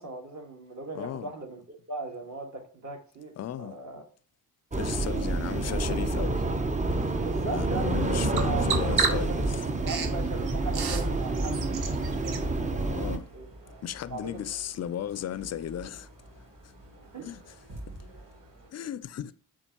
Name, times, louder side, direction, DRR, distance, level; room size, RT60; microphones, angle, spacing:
voice 1, 0.0-1.6 1.9-3.3 3.6-4.0 7.2-9.5 9.8-13.5 14.1-14.5 17.1-17.2, right 3 dB, 40° right, 1.6 m, -39 dB
voice 2, 0.9-1.3 3.4-3.8 4.8-6.4 7.5-9.6 12.8-13.3 13.8-16.1 17.2-17.4 18.7-19.3, left 10 dB, 40° left, 0.4 m, -35 dB
sound 1, 4.7-13.2, right 2 dB, 15° right, 0.6 m, -28 dB
Bird vocalization bird call bird song, 6.8-12.5, right 5 dB, 60° right, 1.0 m, -34 dB
sound 2, 8.0-18.7, right 1 dB, 85° right, 1.7 m, -49 dB
7.0 x 2.6 x 2.9 m
supercardioid pair, 45°, 43 cm